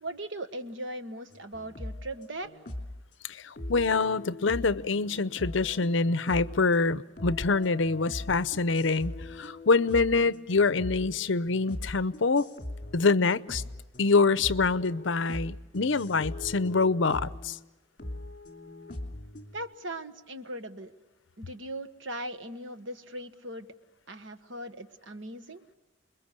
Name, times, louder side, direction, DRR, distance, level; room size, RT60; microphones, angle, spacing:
voice 1, 0.0-2.5 19.5-20.9 21.4-23.7 24.1-25.6, right 1 dB, 65° right, 9 dB, 1.5 m, -39 dB
sound 1, 1.3-3.0 3.6-6.8 7.2-17.6 18.0-19.7, left 1 dB, 40° left, 3.1 m, -41 dB
voice 2, 3.3-12.5 12.9-13.6 14.0-17.6, left 4 dB, 70° left, 16 dB, 0.7 m, -25 dB
29.0 x 22.0 x 6.7 m, 1.1 s
head